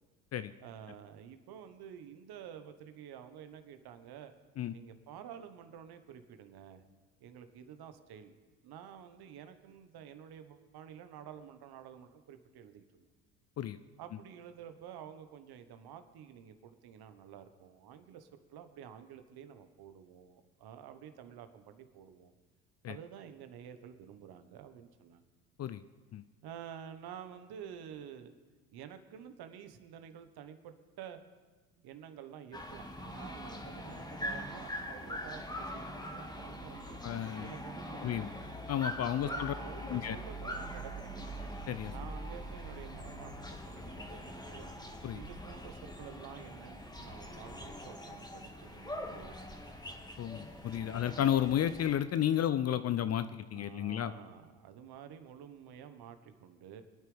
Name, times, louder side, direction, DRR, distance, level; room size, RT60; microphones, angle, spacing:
voice 1, 0.6-4.3 4.7-6.8 7.2-8.3 8.6-13.1 14.0-22.3 22.9-25.2 26.4-28.3 28.7-31.2 31.8-37.0 37.4-38.4 39.0-41.3 41.9-43.3 43.6-44.2 44.5-44.7 45.1-49.5 50.7-50.8 53.5-56.8, right 8 dB, 55° right, 9 dB, 1.4 m, -50 dB
sound 1, 32.5-51.9, equal, 10° left, 1.9 m, -43 dB
voice 2, 37.0-37.5 38.0-38.3 38.7-39.5 39.8-40.2 41.7-41.9 45.0-45.2 50.2-54.1, left 10 dB, 35° left, 13 dB, 0.5 m, -32 dB
25.5 x 9.2 x 3.5 m, 1.3 s
hypercardioid pair, 70°, 47 cm